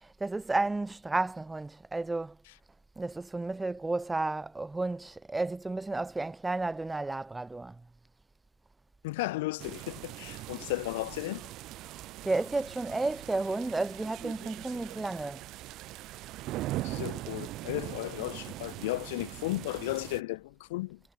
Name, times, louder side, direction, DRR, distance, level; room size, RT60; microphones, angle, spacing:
voice 1, 0.0-2.4 3.0-7.8 12.2-15.4, right 2 dB, 15° right, 1.5 m, -32 dB
voice 2, 9.0-11.4 16.8-21.0, left 20 dB, 70° left, 1.3 m, -34 dB
sound 1, 9.6-20.2, right 16 dB, 55° right, 4.1 m, -41 dB
hypercardioid pair, 70°, 0 cm